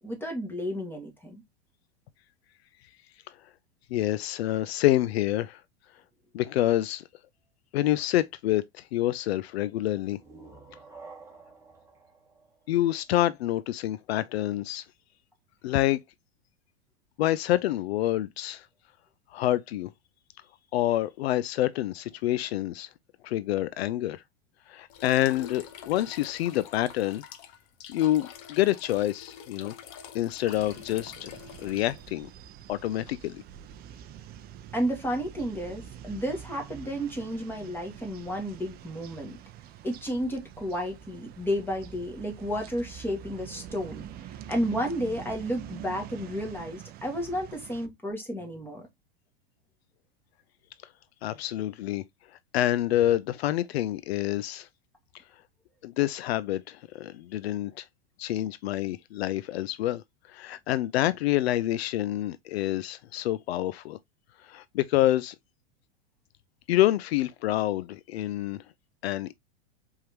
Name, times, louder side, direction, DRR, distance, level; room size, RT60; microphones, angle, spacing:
voice 1, 0.0-1.4 34.7-39.4 39.8-44.1 44.5-48.8, equal, 5° left, 1.8 m, -32 dB
voice 2, 3.9-5.6 6.3-7.0 7.7-10.2 12.7-14.8 15.6-16.0 17.2-18.7 19.3-19.9 20.7-22.9 23.2-24.2 24.7-27.2 27.9-29.7 30.1-32.3 32.7-33.4 51.2-52.0 52.5-54.7 55.8-57.9 58.2-64.0 64.4-65.3 66.7-68.6 69.0-69.3, left 14 dB, 75° left, 0.4 m, -27 dB
sound 1, 9.9-13.5, right 3 dB, 10° right, 1.5 m, -51 dB
sound 2, 24.9-32.1, left 9 dB, 50° left, 0.9 m, -46 dB
sound 3, 30.4-47.9, right 10 dB, 30° right, 0.5 m, -46 dB
4.7 x 3.7 x 2.9 m
hypercardioid pair, 110°, 32 cm